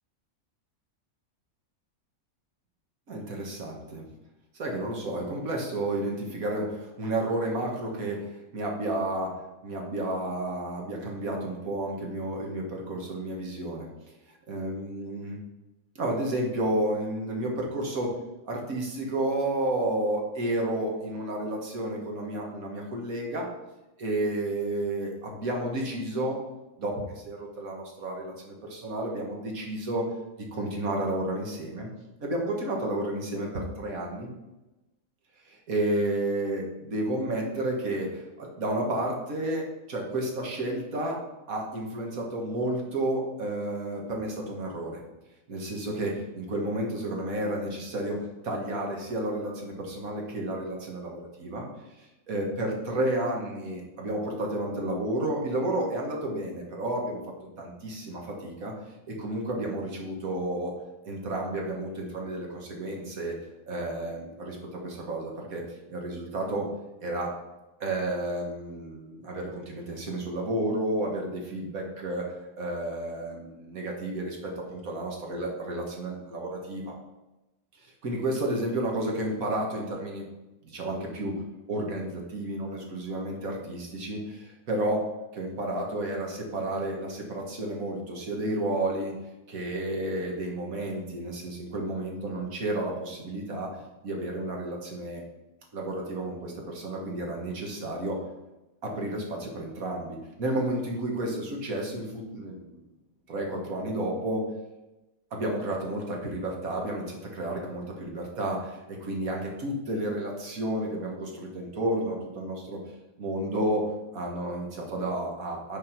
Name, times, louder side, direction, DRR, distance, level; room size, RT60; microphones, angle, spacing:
voice 1, 3.1-4.0 4.5-9.3 9.6-13.9 14.5-15.4 16.0-18.2 18.4-23.5 24.0-26.4 26.8-30.0 30.5-31.9 32.2-34.3 35.5-41.2 41.5-45.0 45.5-51.7 52.0-57.2 57.6-58.7 59.1-60.7 61.0-63.3 63.7-65.6 65.9-66.7 67.0-67.3 67.8-76.9 77.8-80.3 80.6-81.4 81.7-89.2 89.5-95.2 95.7-98.2 98.8-102.8 103.3-104.4 105.3-112.8 113.2-115.8, right 1 dB, 80° right, 0 dB, 2.0 m, -31 dB
10.5 x 4.2 x 4.6 m, 1.0 s
omnidirectional pair, 1.5 m